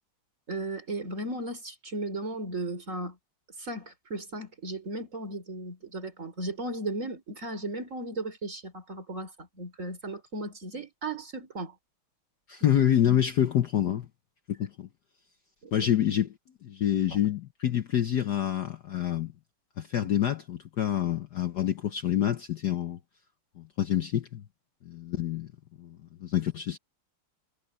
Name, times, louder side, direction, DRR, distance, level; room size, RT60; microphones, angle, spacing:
voice 1, 0.5-3.2 3.6-11.7 12.6-12.7 15.6-15.7, right 2 dB, 35° right, 3.9 m, -36 dB
voice 2, 12.5-14.1 14.5-14.9 15.7-16.3 16.6-19.3 19.8-23.0 23.6-24.4 24.8-25.5 25.8-26.8, left 10 dB, 60° left, 1.3 m, -27 dB
omnidirectional pair, 2.4 m